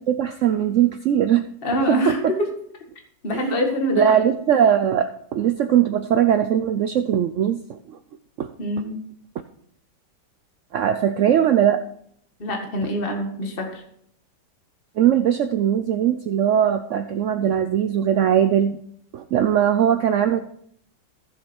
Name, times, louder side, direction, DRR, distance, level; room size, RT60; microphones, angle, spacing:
voice 1, 0.1-1.5 1.8-2.3 3.3-3.5 3.9-7.8 8.4-8.5 10.7-11.8 15.0-18.8 19.1-20.4, right 9 dB, 70° right, 9 dB, 0.7 m, -20 dB
voice 2, 1.6-2.4 3.2-4.1 8.6-9.0 12.4-13.8, left 1 dB, 30° left, 3 dB, 1.9 m, -25 dB
15.0 x 7.1 x 4.5 m, 0.67 s
omnidirectional pair, 1.9 m